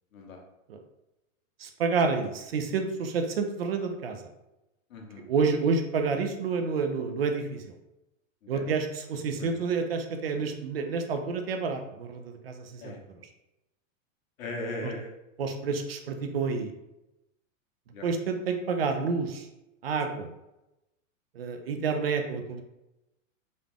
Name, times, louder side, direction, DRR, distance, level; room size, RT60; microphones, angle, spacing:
voice 1, 1.6-4.3 5.3-7.7 8.5-12.9 15.4-16.7 18.0-19.5 19.8-20.3 21.3-22.6, right 5 dB, 50° right, 6 dB, 0.5 m, -29 dB
voice 2, 4.9-5.2 8.4-8.6 9.4-9.7 12.8-13.0 14.4-15.1 17.9-18.1, left 2 dB, 85° left, 1 dB, 1.1 m, -38 dB
3.8 x 2.3 x 3.5 m, 0.93 s
supercardioid pair, 180°, 40 cm